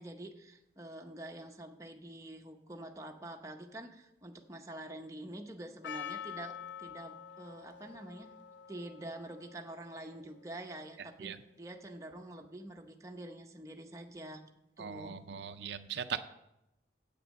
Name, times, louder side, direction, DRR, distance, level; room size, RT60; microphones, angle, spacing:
voice 1, 0.0-8.3 8.7-14.4 14.8-15.2, right 1 dB, 15° right, 3 dB, 0.7 m, -46 dB
Percussion, 5.8-11.1, left 8 dB, 75° left, 0.4 m, -47 dB
voice 2, 14.8-16.2, right 7 dB, 70° right, 10 dB, 0.4 m, -39 dB
8.4 x 6.6 x 7.3 m, 0.88 s
head